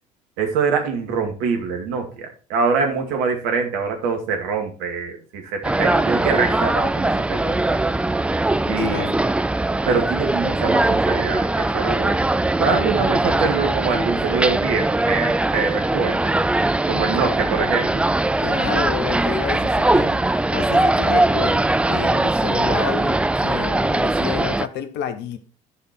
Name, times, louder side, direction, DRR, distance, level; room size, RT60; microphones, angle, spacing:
voice 1, 0.4-7.6 8.7-9.1 9.9-12.3 12.6-16.3 16.9-18.0, right 5 dB, 65° right, 2.2 m, -24 dB
sound 1, 5.6-24.7, right 2 dB, 5° right, 0.4 m, -21 dB
voice 2, 8.8-9.1 17.1-17.2 18.4-25.4, left 9 dB, 60° left, 1.2 m, -30 dB
11.5 x 5.1 x 4.5 m
figure-of-eight pair, 60°, 20 cm